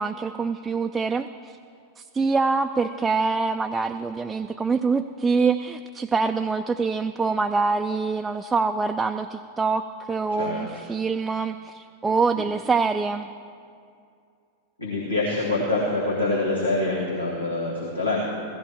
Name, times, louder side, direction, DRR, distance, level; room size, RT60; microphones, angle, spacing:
voice 1, 0.0-1.6 2.0-13.3, right 4 dB, 15° right, 6 dB, 0.3 m, -25 dB
voice 2, 14.8-18.3, left 2 dB, 85° left, -5 dB, 1.8 m, -25 dB
16.5 x 14.0 x 3.5 m, 2.4 s
figure-of-eight pair, 90°, 0 cm